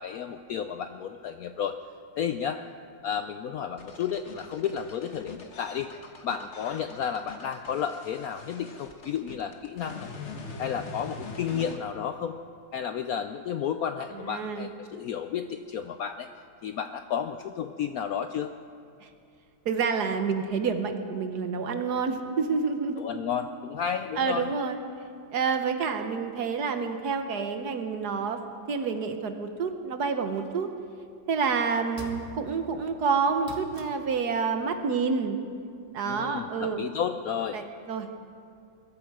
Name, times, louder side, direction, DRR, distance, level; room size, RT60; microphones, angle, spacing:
voice 1, 0.0-1.8 2.2-2.6 3.0-5.9 6.2-10.1 10.6-12.4 12.7-16.3 16.6-18.5 23.0-24.5 36.0-37.6, left 8 dB, 75° left, 8 dB, 0.8 m, -32 dB
sound 1, 3.8-11.8, left 4 dB, 40° left, 1.3 m, -43 dB
voice 2, 14.2-14.7 19.0-19.1 19.6-23.0 24.2-24.8 25.3-28.4 28.7-30.7 31.3-35.4 35.9-36.8 37.5-38.1, right 5 dB, 60° right, 6 dB, 1.5 m, -28 dB
sound 2, 30.3-30.9 32.0-32.7 33.4-34.1 35.9-36.0, right 1 dB, 20° right, 1.3 m, -44 dB
21.5 x 13.5 x 4.8 m, 2.4 s
omnidirectional pair, 2.1 m